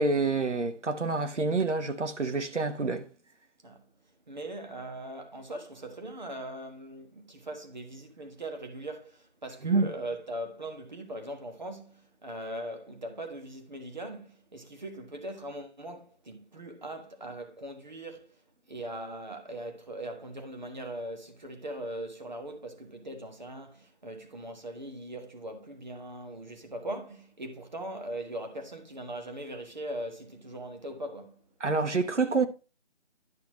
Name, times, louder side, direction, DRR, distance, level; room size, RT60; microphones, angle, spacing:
voice 1, 0.0-3.1 9.6-9.9 31.6-32.5, right 3 dB, 80° right, 1.3 m, -27 dB
voice 2, 4.3-18.4 18.7-31.4, right 1 dB, 40° right, 1.4 m, -40 dB
11.0 x 5.8 x 3.0 m
figure-of-eight pair, 170°, 35 cm